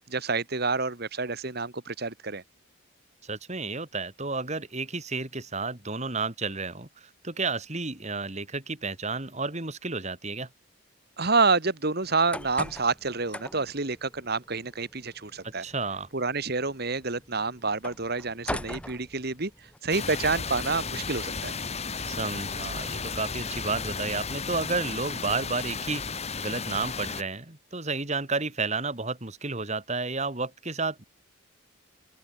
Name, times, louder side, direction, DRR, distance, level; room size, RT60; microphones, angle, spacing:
voice 1, 0.1-2.4 11.2-15.6 16.1-19.5 19.8-21.5, right 4 dB, 50° right, 1.8 m, -28 dB
voice 2, 3.2-10.5 15.6-16.1 22.0-31.0, right 3 dB, 35° right, 2.7 m, -32 dB
sound 1, 12.0-19.8, left 1 dB, 5° left, 2.3 m, -42 dB
sound 2, 19.9-27.2, left 5 dB, 30° left, 2.6 m, -34 dB
open air
head